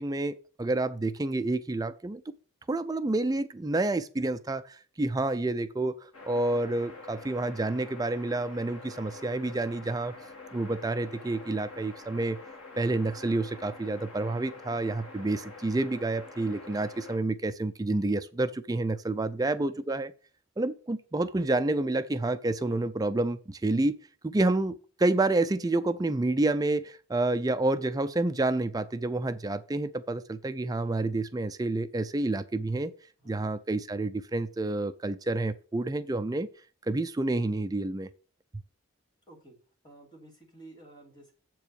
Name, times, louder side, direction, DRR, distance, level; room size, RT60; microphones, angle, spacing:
voice 1, 0.0-2.3 2.7-10.1 10.5-12.4 12.8-20.1 20.6-24.0 24.2-32.9 33.3-36.5 36.8-38.1, right 2 dB, 15° right, 0.4 m, -29 dB
sound 1, 6.1-17.2, left 3 dB, 80° left, 1.9 m, -46 dB
voice 2, 19.4-19.8 22.6-22.8 33.2-33.6 39.3-39.5 39.8-41.3, right 2 dB, 20° left, 2.9 m, -52 dB
7.7 x 4.6 x 6.8 m
head